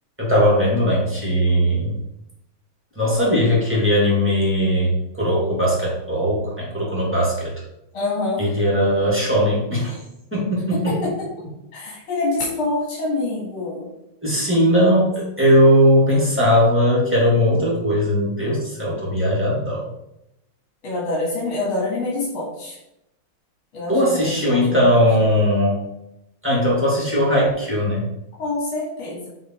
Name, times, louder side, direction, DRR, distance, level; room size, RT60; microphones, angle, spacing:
voice 1, 0.2-1.9 3.0-7.5 8.4-10.0 10.3-10.9 14.2-19.9 23.9-25.8 26.4-28.0, equal, 5° right, -5 dB, 2.1 m, -19 dB
voice 2, 7.9-8.4 10.7-11.1 11.7-13.9 20.8-22.8 23.7-24.9 28.4-29.3, left 2 dB, 75° left, -6 dB, 2.7 m, -26 dB
7.4 x 3.7 x 4.4 m, 0.85 s
omnidirectional pair, 2.3 m